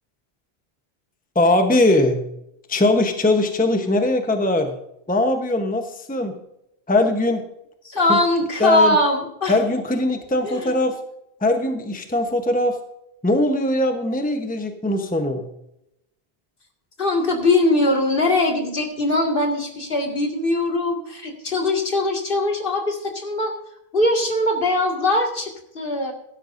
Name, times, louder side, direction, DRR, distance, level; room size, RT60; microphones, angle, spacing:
voice 1, 1.3-2.2 2.7-4.7 5.1-6.4 6.9-7.4 8.1-8.2 8.6-9.0 9.5-11.0 11.4-12.8 13.2-15.5, left 2 dB, 10° left, 5 dB, 1.0 m, -20 dB
voice 2, 7.9-9.6 10.4-10.7 17.0-23.5 23.9-26.1, left 2 dB, 60° left, 2 dB, 2.3 m, -21 dB
15.5 x 12.0 x 2.6 m, 0.81 s
omnidirectional pair, 1.1 m